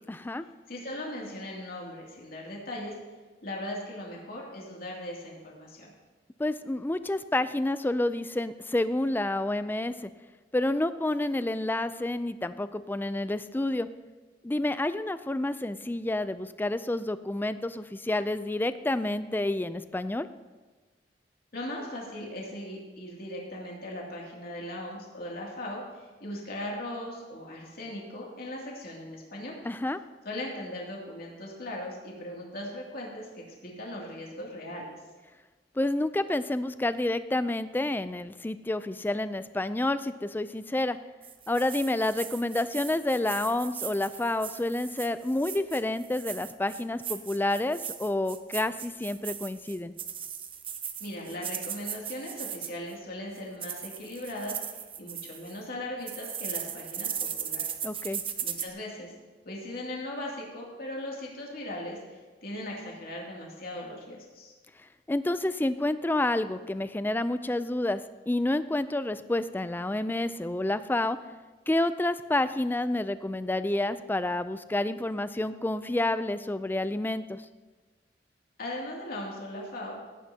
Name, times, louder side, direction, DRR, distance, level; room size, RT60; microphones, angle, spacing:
voice 1, 0.1-0.5 6.4-10.0 10.5-13.9 14.4-20.3 29.6-30.0 35.8-41.0 41.5-50.0 57.8-58.2 65.1-71.2 71.7-77.4, left 1 dB, 10° left, 13 dB, 0.4 m, -29 dB
voice 2, 0.7-2.9 3.4-5.9 21.5-29.6 30.2-34.9 51.0-54.6 55.0-57.6 58.4-59.1 59.4-64.5 78.6-80.0, left 1 dB, 60° left, -2 dB, 2.6 m, -38 dB
sound 1, 41.2-52.9 53.4-55.6 56.0-58.7, right 8 dB, 30° right, 0.7 m, -38 dB
17.0 x 9.7 x 2.8 m, 1.3 s
head